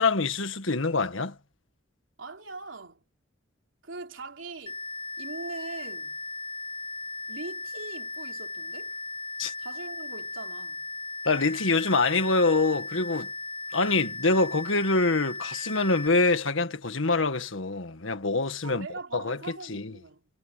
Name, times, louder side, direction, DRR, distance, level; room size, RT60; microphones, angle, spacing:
voice 1, 0.0-1.4 9.4-9.5 11.3-13.3 13.7-18.9 19.1-19.4 19.6-19.9, left 3 dB, 80° left, 1.8 m, -25 dB
voice 2, 2.2-3.0 3.8-4.8 5.2-6.2 7.3-9.0 9.6-10.9 18.6-20.3, right 3 dB, 75° right, 3.4 m, -41 dB
sound 1, 4.7-16.1, left 2 dB, 25° left, 0.6 m, -37 dB
head